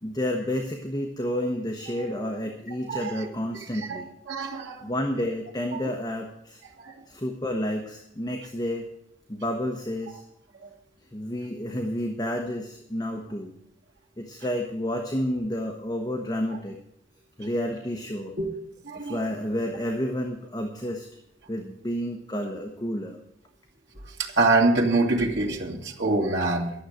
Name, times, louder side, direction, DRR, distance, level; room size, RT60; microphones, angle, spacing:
voice 1, 0.0-4.1 4.8-6.6 7.1-8.9 9.3-10.2 11.1-13.5 14.2-16.8 17.4-18.3 18.9-21.1 21.5-23.2, equal, 20° left, 2 dB, 1.0 m, -30 dB
voice 2, 3.9-4.9 5.7-5.8 6.8-6.9 18.4-18.5 18.9-19.2 24.2-26.7, right 2 dB, 75° right, -3 dB, 2.1 m, -25 dB
12.0 x 7.2 x 7.9 m, 0.75 s
head